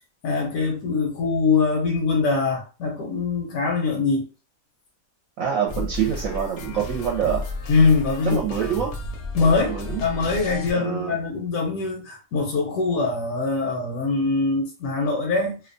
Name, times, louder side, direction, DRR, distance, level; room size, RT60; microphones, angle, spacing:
voice 1, 0.2-4.3 7.7-8.4 9.3-15.6, left 4 dB, 85° left, 1.1 m, -23 dB
voice 2, 5.4-7.5 8.2-8.9 9.4-10.0 10.8-11.2, right 9 dB, 80° right, 1.0 m, -26 dB
sound 1, 5.7-10.7, left 2 dB, 65° left, 0.8 m, -33 dB
2.6 x 2.1 x 2.5 m
omnidirectional pair, 1.5 m